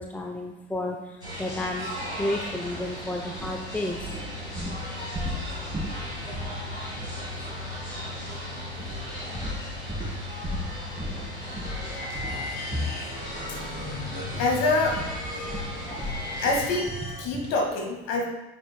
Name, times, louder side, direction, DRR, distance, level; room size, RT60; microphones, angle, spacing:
voice 1, 0.0-4.2 9.2-9.4 9.8-10.1 11.4-11.6 12.3-12.4, left 1 dB, 5° left, 2 dB, 0.7 m, -32 dB
sound 1, 1.2-16.7, left 1 dB, 90° left, 1.6 m, -37 dB
sound 2, 2.7-2.9 3.3-7.8 8.0-8.3 8.8-13.9 14.2-17.7, left 1 dB, 15° right, 2.2 m, -36 dB
sound 3, 11.6-17.2, left 2 dB, 75° left, 2.4 m, -37 dB
voice 2, 14.3-15.0 15.8-15.9 16.4-18.3, left 3 dB, 55° left, 1 dB, 1.8 m, -26 dB
9.0 x 6.1 x 2.2 m, 1.0 s
figure-of-eight pair, 55°, 32 cm